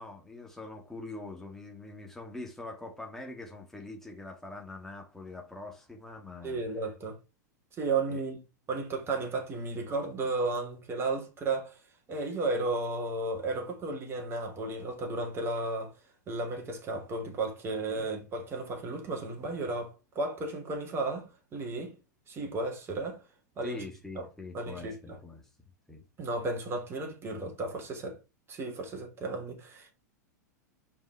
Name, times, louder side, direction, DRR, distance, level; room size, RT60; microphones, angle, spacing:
voice 1, 0.0-6.8 8.1-8.2 17.9-18.0 23.6-25.5 25.9-26.0, left 2 dB, 5° left, 2.3 m, -44 dB
voice 2, 6.4-7.2 7.8-8.4 8.7-11.8 12.1-15.9 16.3-21.9 22.3-23.2 23.6-23.8 24.1-24.2 24.5-25.2 26.2-28.2 28.5-29.9, right 3 dB, 25° right, 3.3 m, -34 dB
5.8 x 5.4 x 4.8 m
hypercardioid pair, 95°, 10 cm